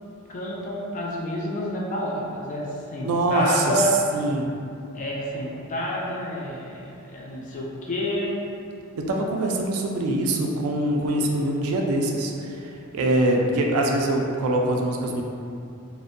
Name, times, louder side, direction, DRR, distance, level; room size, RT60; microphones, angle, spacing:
voice 1, 0.3-3.9 4.9-8.4, left 1 dB, 35° left, -3 dB, 0.3 m, -29 dB
voice 2, 3.0-3.6 4.1-4.5 9.0-12.6 12.9-15.2, right 1 dB, 70° right, 0 dB, 0.3 m, -23 dB
2.5 x 2.0 x 2.5 m, 2.5 s
head